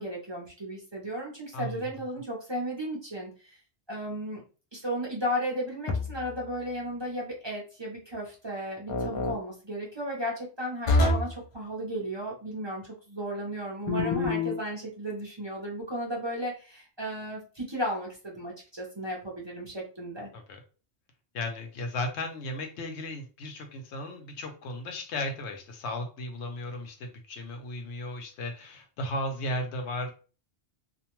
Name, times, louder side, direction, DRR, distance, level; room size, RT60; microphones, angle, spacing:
voice 1, 0.0-3.6 3.9-4.4 4.7-20.3, equal, 30° right, -3 dB, 0.6 m, -35 dB
voice 2, 1.5-1.9 20.3-20.6 21.3-30.1, left 1 dB, 80° left, 5 dB, 0.9 m, -35 dB
sound 1, 5.9-6.4 8.9-9.4 10.9-11.4 13.9-14.6, left 2 dB, 55° left, 0.3 m, -26 dB
2.5 x 2.2 x 2.9 m, 0.36 s
omnidirectional pair, 1.1 m